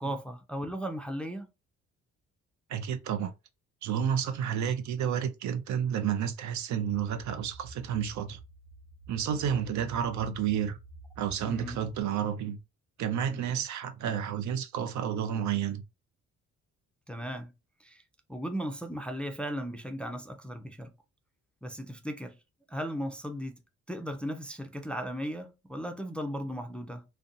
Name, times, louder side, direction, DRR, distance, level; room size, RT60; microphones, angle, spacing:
voice 1, 0.0-1.5 11.5-11.8 13.3-13.6 17.1-17.5 17.8-18.0 18.3-20.9 21.6-22.4 22.7-23.5 23.9-27.0, equal, 5° left, 0.3 m, -36 dB
voice 2, 2.7-3.3 3.8-8.4 9.1-10.8 11.2-12.6 13.0-15.8, right 8 dB, 70° right, 0.5 m, -30 dB
sound 1, 6.8-12.0, right 3 dB, 45° right, 0.8 m, -49 dB
2.5 x 2.1 x 2.6 m
cardioid pair, 90°, 30 cm